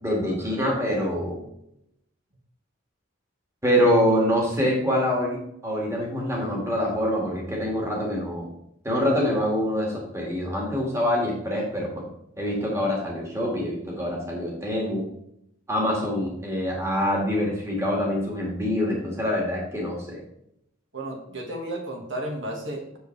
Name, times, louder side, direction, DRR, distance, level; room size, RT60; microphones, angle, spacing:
voice 1, 0.0-1.4 3.6-8.5 8.8-12.0 12.4-15.1 15.7-20.2, equal, 15° right, -2 dB, 1.9 m, -25 dB
voice 2, 20.9-23.0, right 1 dB, 65° right, 0 dB, 1.7 m, -33 dB
8.0 x 6.8 x 3.3 m, 0.77 s
head